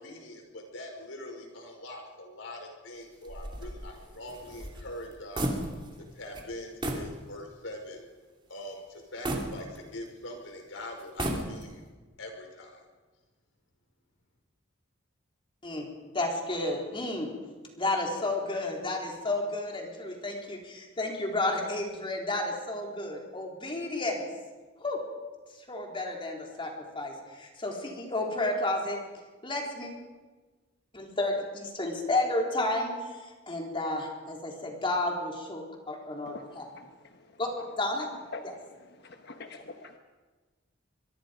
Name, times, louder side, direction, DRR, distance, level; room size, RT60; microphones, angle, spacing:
voice 1, 0.0-5.5 6.0-8.1 8.5-11.9 12.2-12.8, left 1 dB, 80° left, 3 dB, 5.4 m, -43 dB
sound 1, 3.2-6.1 6.3-6.5 6.8-7.1 7.6-7.7 9.2-10.2 11.0-11.9, right 1 dB, 25° right, 2.9 m, -34 dB
voice 2, 16.1-17.3 17.8-24.2 24.8-25.0 25.6-29.0 29.4-29.9 30.9-36.7 37.4-37.5 37.8-38.1, left 2 dB, 25° left, 0 dB, 3.9 m, -31 dB
voice 3, 36.8-37.2 38.3-38.4 39.0-40.0, left 3 dB, 60° left, 5 dB, 1.2 m, -44 dB
23.5 x 23.5 x 5.2 m, 1.3 s
head